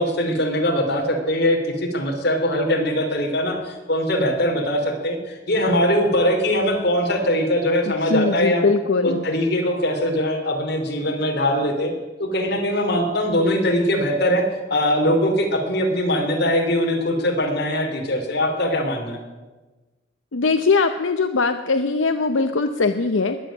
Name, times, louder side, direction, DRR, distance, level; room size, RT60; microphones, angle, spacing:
voice 1, 0.0-8.7 9.0-11.9 12.2-14.4 14.7-19.2, equal, 60° left, 2 dB, 3.2 m, -21 dB
voice 2, 7.9-9.2 20.3-23.4, left 4 dB, 85° left, 8 dB, 0.7 m, -21 dB
20.5 x 7.4 x 8.8 m, 1.2 s
head